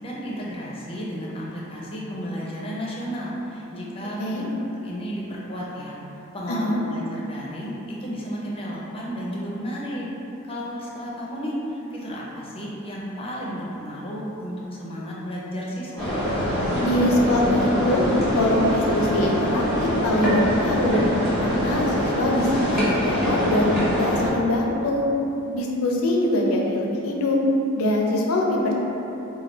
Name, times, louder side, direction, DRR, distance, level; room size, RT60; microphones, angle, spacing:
voice 1, 0.0-4.4 4.8-6.0 6.3-10.1 10.5-16.1, equal, 25° left, -5 dB, 0.6 m, -33 dB
voice 2, 6.5-6.8 16.8-18.0 18.3-21.0 21.4-25.0 25.5-27.4 27.7-28.8, left 1 dB, 80° left, -1 dB, 0.5 m, -23 dB
sound 1, 16.0-24.3, equal, ahead, 1.2 m, -23 dB
3.2 x 2.3 x 4.1 m, 3.0 s
head